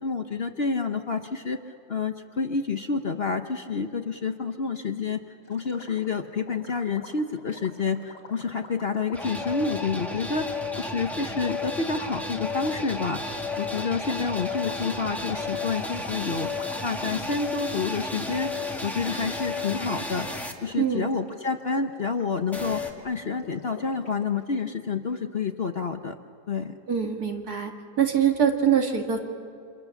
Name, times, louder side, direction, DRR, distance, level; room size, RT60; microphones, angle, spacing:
voice 1, 0.0-1.6 1.9-5.2 5.5-10.4 10.8-16.5 16.8-18.5 18.8-20.3 20.6-26.2 26.5-26.8, left 5 dB, 45° left, 6 dB, 1.0 m, -29 dB
Gurgling, 5.4-10.1 10.7-10.8 11.4-11.8 12.5-17.5 17.7-17.9 18.2-19.4 19.6-19.9 20.2-20.7 21.0-24.4, left 5 dB, 70° left, 3.3 m, -46 dB
sound 1, 9.1-20.5 22.5-22.9, left 2 dB, ahead, 1.8 m, -33 dB
voice 2, 20.8-21.1 26.9-27.7 28.0-29.2, right 8 dB, 65° right, 3 dB, 2.5 m, -23 dB
30.0 x 26.0 x 7.2 m, 2.5 s
omnidirectional pair, 1.8 m